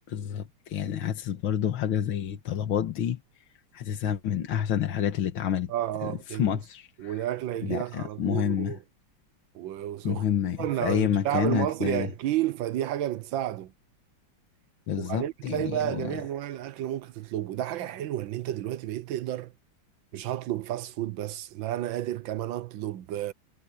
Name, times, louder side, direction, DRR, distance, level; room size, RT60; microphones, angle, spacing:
voice 1, 0.1-3.2 3.7-5.7 6.3-7.2 7.6-8.8 10.0-12.1 14.9-16.1, left 9 dB, 80° left, 2.1 m, -28 dB
voice 2, 5.7-6.6 7.0-8.8 9.5-10.2 10.6-13.7 15.0-19.5 20.1-23.3, right 12 dB, 75° right, 1.5 m, -31 dB
omnidirectional pair, 2.2 m